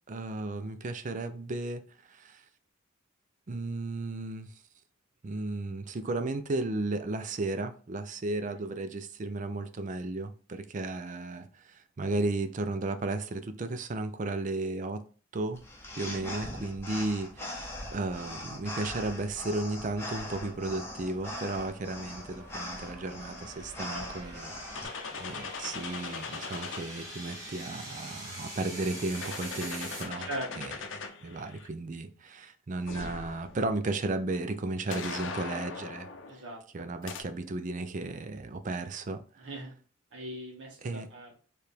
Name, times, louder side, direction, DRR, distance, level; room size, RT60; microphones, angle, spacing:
voice 1, 0.1-1.8 2.1-2.4 3.5-4.5 5.2-15.0 15.3-15.6 16.0-30.3 30.5-30.8 31.2-36.1 36.7-39.6 40.8-41.1, right 2 dB, 40° right, 0.4 m, -34 dB
sound 1, 15.6-24.8, left 1 dB, 10° left, 1.1 m, -41 dB
sound 2, 15.7-30.0, right 1 dB, 15° right, 1.7 m, -46 dB
sound 3, 24.8-27.4 28.4-31.7 32.9-33.7 34.9-36.4 37.0-37.2, left 5 dB, 70° left, 0.6 m, -40 dB
voice 2, 30.3-30.7 36.3-36.9 39.4-39.7 40.1-41.4, equal, 65° right, 1.6 m, -40 dB
4.7 x 3.3 x 3.3 m
head